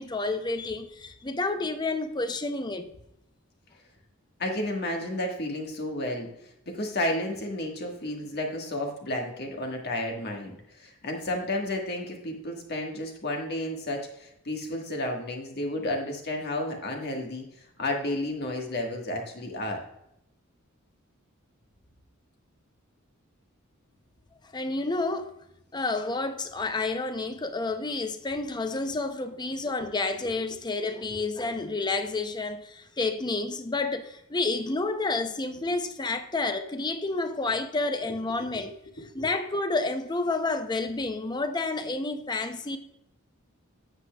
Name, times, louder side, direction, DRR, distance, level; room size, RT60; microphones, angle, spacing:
voice 1, 0.0-2.9 24.5-25.3 25.7-38.8 39.1-42.8, left 3 dB, 20° left, 0.6 m, -30 dB
voice 2, 4.4-6.3 6.6-17.4 17.8-19.8 38.5-38.7 39.0-39.3, left 1 dB, 50° left, 1.5 m, -32 dB
9.6 x 7.9 x 2.3 m
head